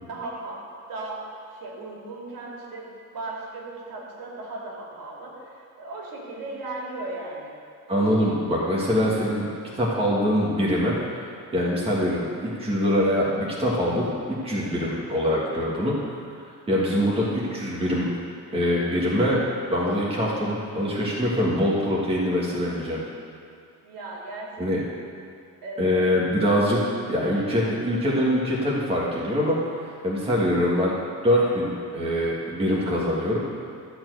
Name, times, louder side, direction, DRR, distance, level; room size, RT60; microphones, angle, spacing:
voice 1, 0.1-0.6 0.9-1.2 1.6-7.5 23.8-24.7 25.6-26.0, right 2 dB, 75° right, -4 dB, 2.7 m, -36 dB
voice 2, 7.9-9.4 9.8-11.2 11.5-14.1 14.4-16.2 16.7-18.1 18.5-23.0 24.6-24.8 25.8-26.8 27.1-29.7 30.0-30.9 31.2-33.4, equal, 15° right, -5 dB, 1.6 m, -23 dB
13.5 x 4.4 x 7.9 m, 2.4 s
cardioid pair, 170°, 34 cm